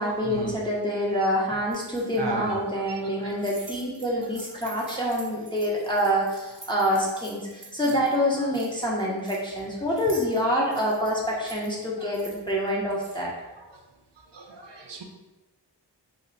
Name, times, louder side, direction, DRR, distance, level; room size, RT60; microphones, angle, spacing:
voice 1, 0.0-13.3, equal, 10° left, -5 dB, 0.7 m, -26 dB
sound 1, 1.7-2.2 3.3-8.2 8.4-9.6 10.0-13.2, right 3 dB, 45° right, 0.8 m, -47 dB
voice 2, 2.2-2.6 2.9-3.5 4.9-5.0 10.4-10.6 12.0-12.1 13.6-13.8 14.3-15.0, right 3 dB, 80° right, 2 dB, 0.6 m, -36 dB
3.1 x 2.1 x 3.9 m, 1.1 s
wide cardioid pair, 45°, 42 cm